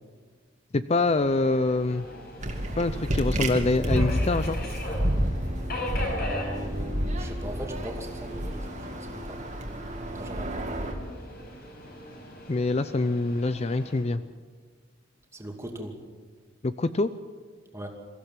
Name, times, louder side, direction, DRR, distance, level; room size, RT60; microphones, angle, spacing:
voice 1, 0.7-2.1 2.8-4.6 12.5-14.2 16.6-17.1, left 2 dB, 35° left, 12 dB, 0.5 m, -25 dB
Subway metro underground, 1.0-14.0, left 1 dB, 55° left, 5.2 m, -40 dB
sound 1, 2.4-10.9, equal, 40° right, 2.3 m, -30 dB
voice 2, 5.9-8.6 8.9-9.4 10.1-10.6 15.3-15.9 17.7-17.9, equal, 15° right, 2 dB, 2.5 m, -39 dB
23.5 x 15.0 x 7.4 m, 1.5 s
head